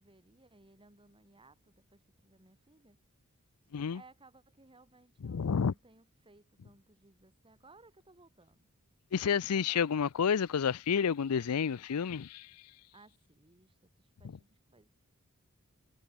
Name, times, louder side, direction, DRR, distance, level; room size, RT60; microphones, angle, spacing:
voice 1, 0.0-3.0 3.9-8.7 9.3-9.8 12.9-14.9, right 2 dB, 25° right, 2.3 m, -61 dB
voice 2, 5.2-5.7 9.1-12.6, left 7 dB, 80° left, 0.5 m, -30 dB
head